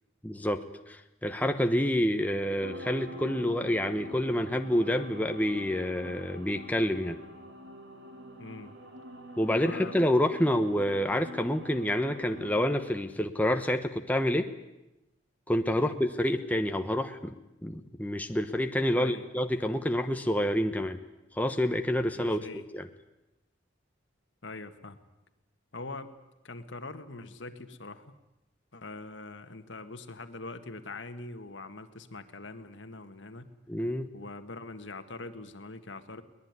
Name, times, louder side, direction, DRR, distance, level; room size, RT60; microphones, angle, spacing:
voice 1, 0.2-7.2 9.4-14.5 15.5-17.3 17.6-21.0 21.4-22.9 33.7-34.1, equal, 10° left, 6 dB, 1.0 m, -28 dB
sound 1, 2.6-12.9, equal, 70° right, 3.2 m, -45 dB
voice 2, 8.4-8.8 9.5-10.0 15.7-16.0 18.9-19.2 22.2-22.7 24.4-25.0 25.7-26.1 26.4-28.1 28.7-33.5 34.1-36.2, left 3 dB, 75° left, 9 dB, 1.7 m, -43 dB
23.0 x 19.5 x 9.6 m, 0.95 s
head